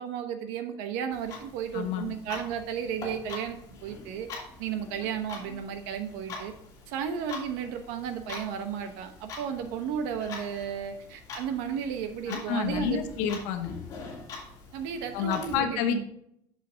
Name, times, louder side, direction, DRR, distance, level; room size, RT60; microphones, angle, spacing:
voice 1, 0.0-4.3 4.6-6.5 6.9-13.0 14.7-16.1, right 8 dB, 90° right, 6 dB, 1.0 m, -34 dB
Clock, 1.1-15.5, left 4 dB, 35° left, 2.7 m, -44 dB
voice 2, 1.7-2.1 12.3-13.8 15.1-16.1, left 7 dB, 85° left, 6 dB, 1.2 m, -29 dB
8.0 x 6.7 x 3.4 m, 0.71 s
cardioid pair, 165°, 10 cm